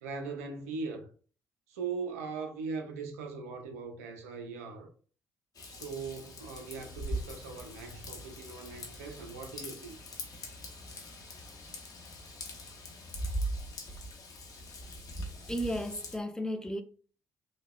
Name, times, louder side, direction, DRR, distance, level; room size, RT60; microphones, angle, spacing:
voice 1, 0.0-1.1 1.7-4.9 5.7-10.0, right 4 dB, 80° right, 0.4 m, -40 dB
Raindrop / Vehicle horn car horn honking / Trickle dribble, 5.5-16.2, equal, 55° left, 0.8 m, -41 dB
voice 2, 15.5-16.8, equal, 10° left, 0.4 m, -34 dB
3.3 x 2.1 x 2.2 m
figure-of-eight pair, 45°, 8 cm